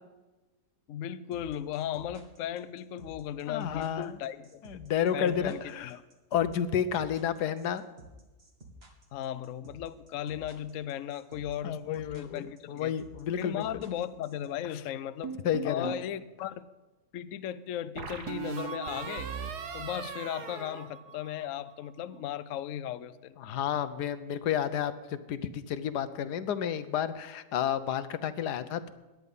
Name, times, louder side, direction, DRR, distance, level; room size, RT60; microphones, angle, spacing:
voice 1, 0.9-4.6 5.1-6.0 9.1-12.9 13.4-15.3 15.6-16.7 17.1-19.3 19.7-23.4, left 10 dB, 65° left, 0.9 m, -36 dB
sound 1, 1.3-14.5, right 2 dB, 40° right, 2.1 m, -52 dB
voice 2, 3.5-4.2 4.6-5.9 6.3-7.8 11.6-13.6 15.4-15.9 23.4-28.9, left 9 dB, 85° left, 1.4 m, -31 dB
sound 2, 15.2-16.1 18.0-21.6, right 7 dB, 80° right, 1.8 m, -39 dB
17.5 x 11.0 x 5.5 m
omnidirectional pair, 1.7 m